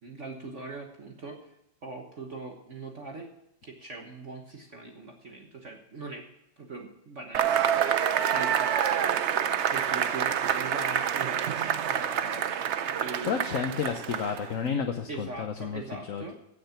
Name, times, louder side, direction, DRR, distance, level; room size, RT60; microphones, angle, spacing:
voice 1, 0.0-1.5 1.8-3.3 3.6-6.3 6.6-8.0 8.3-12.4 13.0-13.6 15.1-16.3, right 3 dB, 45° right, 2 dB, 1.4 m, -41 dB
Cheering / Applause / Crowd, 7.3-14.6, right 9 dB, 70° right, 0.6 m, -27 dB
voice 2, 13.3-16.3, left 6 dB, 55° left, 5 dB, 1.1 m, -31 dB
16.0 x 6.7 x 5.8 m, 0.86 s
omnidirectional pair, 2.0 m